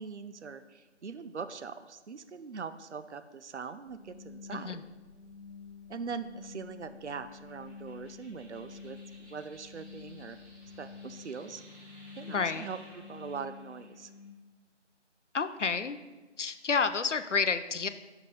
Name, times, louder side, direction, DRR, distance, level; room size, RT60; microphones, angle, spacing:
voice 1, 0.0-4.8 5.9-10.4 10.8-11.6 12.2-14.1, right 5 dB, 70° right, 11 dB, 0.5 m, -42 dB
sound 1, 3.8-14.3, left 5 dB, 15° right, 2.5 m, -49 dB
voice 2, 12.3-12.7 15.3-16.0 16.4-17.9, left 5 dB, 75° left, 10 dB, 0.6 m, -30 dB
6.0 x 5.4 x 5.2 m, 1.2 s
figure-of-eight pair, 170°, 36 cm